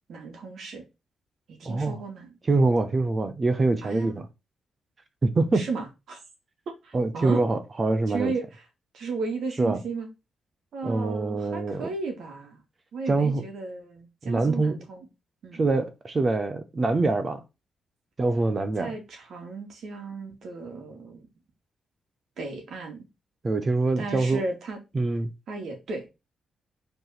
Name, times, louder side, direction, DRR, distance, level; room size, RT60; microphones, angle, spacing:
voice 1, 0.1-0.8 1.5-2.4 3.8-4.1 5.5-6.2 6.8-7.4 8.1-8.6 8.9-10.1 10.7-12.6 12.9-15.1 15.4-15.7 18.8-21.3 22.4-23.0 24.0-24.8 25.5-26.1, right 4 dB, 65° right, 2.5 m, -34 dB
voice 2, 1.6-2.0 2.5-4.2 5.2-5.7 6.9-8.3 9.6-9.8 10.8-11.9 13.1-13.4 14.2-14.8 15.5-17.4 18.2-18.9 23.4-24.4 24.9-25.3, right 3 dB, 25° right, 0.8 m, -24 dB
5.4 x 4.6 x 5.9 m
wide cardioid pair, 155°, 0 cm